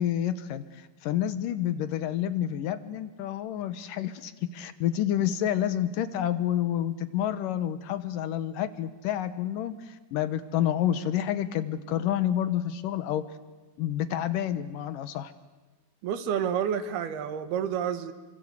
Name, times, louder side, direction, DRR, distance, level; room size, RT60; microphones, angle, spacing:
voice 1, 0.0-13.3 13.8-15.3, left 11 dB, 70° left, 13 dB, 2.4 m, -29 dB
voice 2, 16.0-18.1, right 8 dB, 85° right, 10 dB, 3.5 m, -29 dB
28.5 x 24.5 x 8.2 m, 1.3 s
omnidirectional pair, 4.4 m